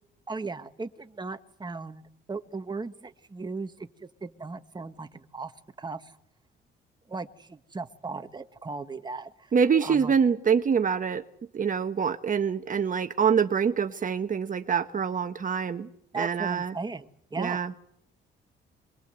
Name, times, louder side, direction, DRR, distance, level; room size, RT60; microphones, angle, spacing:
voice 1, 0.3-2.0 2.3-5.5 5.8-6.1 7.1-9.5 9.8-10.2 16.1-17.7, right 4 dB, 20° right, 8 dB, 1.5 m, -37 dB
voice 2, 9.5-11.2 11.5-15.9 16.1-16.7 17.4-17.7, right 6 dB, 40° right, 7 dB, 1.2 m, -25 dB
27.0 x 22.0 x 7.9 m, 0.77 s
cardioid pair, 90°, 20 cm